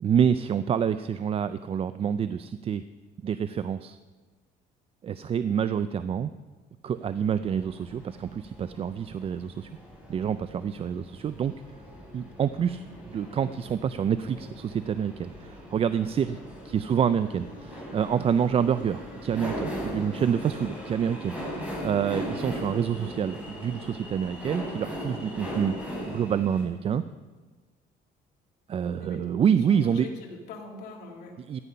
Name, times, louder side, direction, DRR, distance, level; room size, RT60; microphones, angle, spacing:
voice 1, 0.0-2.8 3.2-4.0 5.0-6.3 6.8-9.7 10.1-11.5 12.1-16.4 16.6-25.7 26.0-27.0 28.7-30.1 31.5-31.6, right 8 dB, 35° right, 13 dB, 0.4 m, -27 dB
sound 1, 7.0-26.6, equal, 5° right, 5.2 m, -39 dB
voice 2, 29.0-31.3, left 2 dB, 75° left, 0 dB, 2.6 m, -43 dB
13.5 x 10.0 x 5.5 m, 1.4 s
cardioid pair, 110°, 17 cm